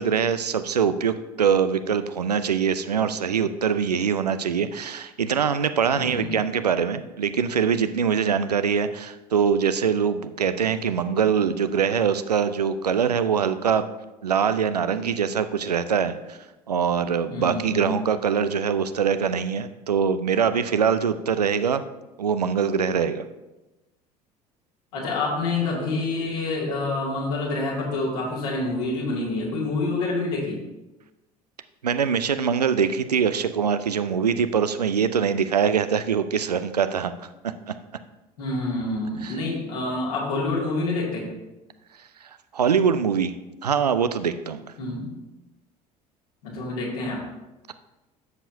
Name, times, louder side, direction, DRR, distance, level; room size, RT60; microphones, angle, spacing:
voice 1, 0.0-13.9 14.2-16.4 16.7-21.8 22.2-23.2 31.8-37.7 42.5-43.3 43.6-44.6, right 7 dB, 80° right, 11 dB, 0.5 m, -23 dB
voice 2, 5.9-6.3 17.3-18.0 24.9-30.6 38.4-41.3 44.8-45.1 46.4-47.2, left 2 dB, 65° left, -3 dB, 2.4 m, -27 dB
12.0 x 7.3 x 2.7 m, 1.0 s
figure-of-eight pair, 65°, 20 cm